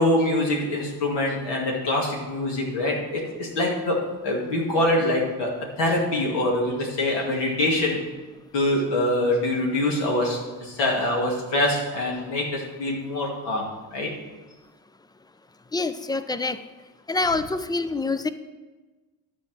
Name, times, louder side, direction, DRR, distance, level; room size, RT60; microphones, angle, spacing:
voice 1, 0.0-8.0 8.5-14.1, left 1 dB, 60° left, -2 dB, 2.3 m, -24 dB
voice 2, 15.7-16.6 17.1-18.3, left 3 dB, 10° left, 12 dB, 0.4 m, -26 dB
11.5 x 4.8 x 6.1 m, 1.2 s
hypercardioid pair, 55°, 47 cm